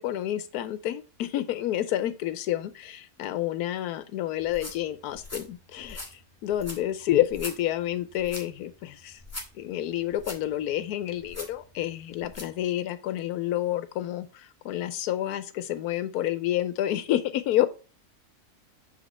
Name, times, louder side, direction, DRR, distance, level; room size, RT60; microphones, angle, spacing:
voice 1, 0.0-9.2 9.5-17.7, left 13 dB, 90° left, 13 dB, 1.1 m, -29 dB
sound 1, 4.4-12.6, left 1 dB, 10° left, 1.5 m, -44 dB
6.5 x 5.1 x 4.1 m, 0.33 s
omnidirectional pair, 1.6 m